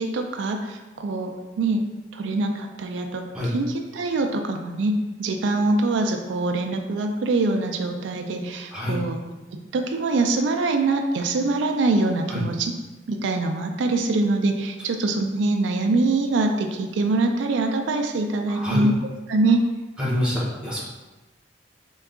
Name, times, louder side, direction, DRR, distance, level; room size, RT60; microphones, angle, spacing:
voice 1, 0.0-1.8 2.1-3.2 3.5-4.9 5.2-9.2 9.5-12.7 13.1-19.0 19.3-19.7, right 2 dB, 90° right, 4 dB, 0.3 m, -24 dB
voice 2, 18.5-18.8 20.0-20.8, left 1 dB, 5° right, -7 dB, 0.8 m, -26 dB
3.6 x 2.3 x 3.6 m, 1.2 s
head